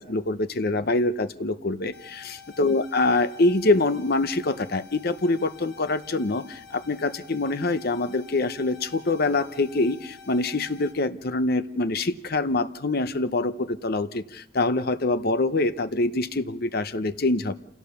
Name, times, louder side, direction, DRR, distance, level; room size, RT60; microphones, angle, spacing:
voice 1, 0.0-2.2 2.6-17.5, left 2 dB, 50° left, 12 dB, 0.8 m, -25 dB
sound 1, 1.9-10.9, left 7 dB, 80° left, 2.9 m, -48 dB
28.0 x 17.0 x 7.0 m, 0.78 s
head